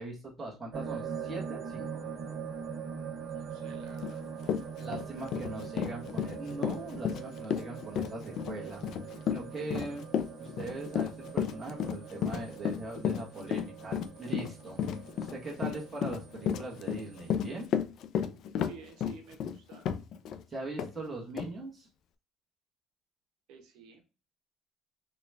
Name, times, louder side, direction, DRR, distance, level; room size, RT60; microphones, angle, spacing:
voice 1, 0.0-2.0 4.8-8.8 9.3-10.1 10.4-14.8 15.3-17.7 18.3-18.4 20.5-21.9, right 2 dB, 10° right, -4 dB, 1.2 m, -41 dB
sound 1, 0.7-17.7, right 6 dB, 40° right, 0.9 m, -42 dB
voice 2, 3.3-5.3 18.7-19.8 23.5-24.0, right 6 dB, 70° right, 3 dB, 0.8 m, -53 dB
Run, 4.0-4.1 4.4-20.4 20.8-20.9 21.4-21.5, left 8 dB, 50° left, 0.3 m, -33 dB
3.9 x 2.3 x 3.2 m, 0.32 s
cardioid pair, 170°, 0 cm